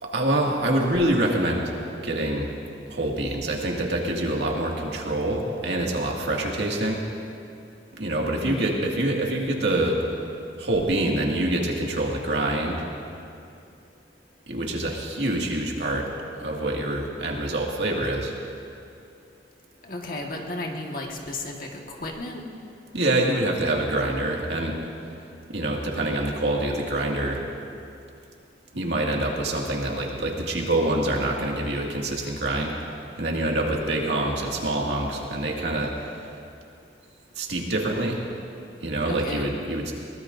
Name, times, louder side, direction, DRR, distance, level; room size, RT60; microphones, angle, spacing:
voice 1, 0.0-1.7 2.0-2.5 2.9-7.0 7.9-10.0 10.6-12.8 14.5-16.1 16.4-18.3 22.9-24.8 25.5-27.5 28.7-32.7 33.2-36.2 37.4-38.2 38.8-39.9, right 1 dB, 75° right, -1 dB, 2.1 m, -26 dB
voice 2, 8.4-8.7 19.8-22.4 39.1-39.4, left 2 dB, 50° left, 0 dB, 1.7 m, -34 dB
22.5 x 19.5 x 2.7 m, 2.6 s
head